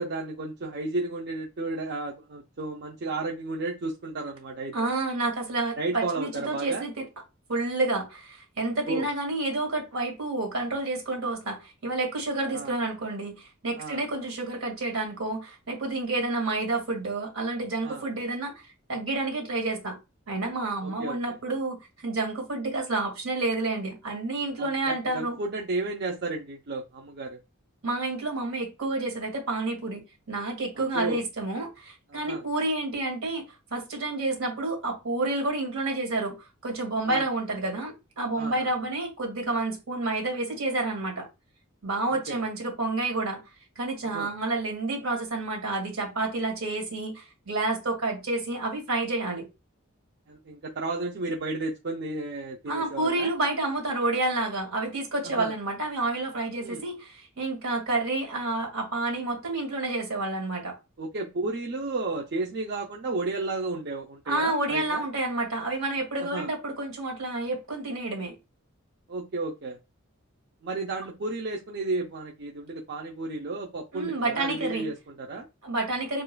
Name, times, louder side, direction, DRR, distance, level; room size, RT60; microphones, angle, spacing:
voice 1, 0.0-4.9 5.8-6.8 8.9-9.1 12.5-12.8 13.8-14.0 17.8-18.1 20.8-21.4 24.6-27.4 30.9-31.2 32.1-32.4 37.0-37.3 38.4-38.7 42.1-42.4 44.0-44.3 50.3-53.3 55.2-55.5 56.6-56.8 61.0-65.1 66.2-66.5 69.1-69.8 70.6-75.5, right 2 dB, 55° right, 0.6 m, -33 dB
voice 2, 4.7-7.1 7.5-20.0 20.3-25.4 27.8-30.0 30.3-33.4 33.7-36.4 36.6-41.3 41.8-43.4 43.8-49.5 52.7-60.8 64.3-68.3 73.9-74.9 75.6-76.2, right 2 dB, 80° right, 1.9 m, -29 dB
6.9 x 2.5 x 2.2 m
head